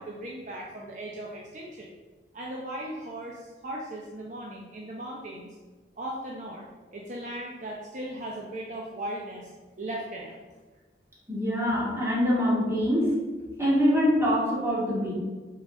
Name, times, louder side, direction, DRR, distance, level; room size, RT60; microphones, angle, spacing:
voice 1, 0.0-1.9 2.3-5.5 6.0-9.5 9.8-10.4, right 1 dB, 45° right, -2 dB, 0.7 m, -37 dB
voice 2, 11.3-13.1 13.6-15.1, equal, 15° right, -6 dB, 2.0 m, -24 dB
6.0 x 4.0 x 5.4 m, 1.3 s
head